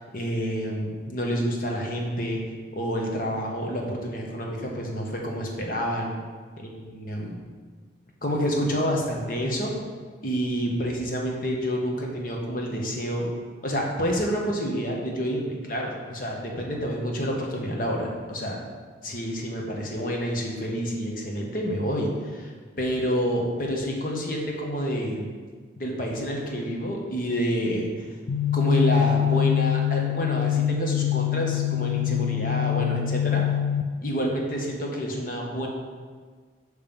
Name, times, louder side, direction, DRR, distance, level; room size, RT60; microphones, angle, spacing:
voice 1, 0.0-2.4 2.7-6.1 6.6-7.3 8.2-9.7 10.2-13.3 13.6-18.6 19.0-25.3 25.8-28.1 28.5-33.4 34.0-35.7, equal, 50° left, 0 dB, 1.0 m, -28 dB
sound 1, 28.3-33.8, left 10 dB, 70° left, 0.4 m, -24 dB
7.1 x 3.2 x 5.2 m, 1.5 s
head